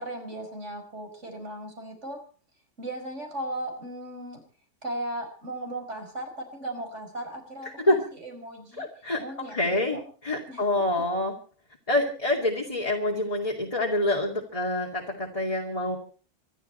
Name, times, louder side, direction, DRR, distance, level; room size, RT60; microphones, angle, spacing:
voice 1, 0.0-2.2 2.8-4.4 4.8-8.9 9.2-10.0 10.5-10.8, right 1 dB, 50° right, 5 dB, 5.5 m, -37 dB
voice 2, 8.8-11.4 11.9-16.0, left 1 dB, 25° left, 0 dB, 2.6 m, -27 dB
25.5 x 12.0 x 4.4 m, 0.41 s
omnidirectional pair, 1.6 m